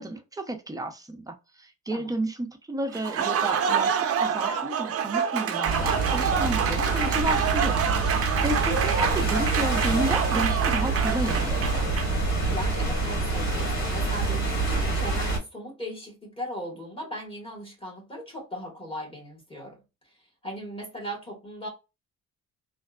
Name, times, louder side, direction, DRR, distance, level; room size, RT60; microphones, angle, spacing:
voice 1, 0.0-7.8 8.1-11.9, right 1 dB, 10° right, 0.7 m, -32 dB
Applause, 2.9-12.3, right 7 dB, 50° right, 0.6 m, -27 dB
sound 1, 5.6-15.4, right 3 dB, 60° left, 1.9 m, -26 dB
voice 2, 12.5-19.8 20.4-21.7, equal, 20° left, 1.8 m, -38 dB
3.4 x 2.5 x 2.3 m
cardioid pair, 115°, 30 cm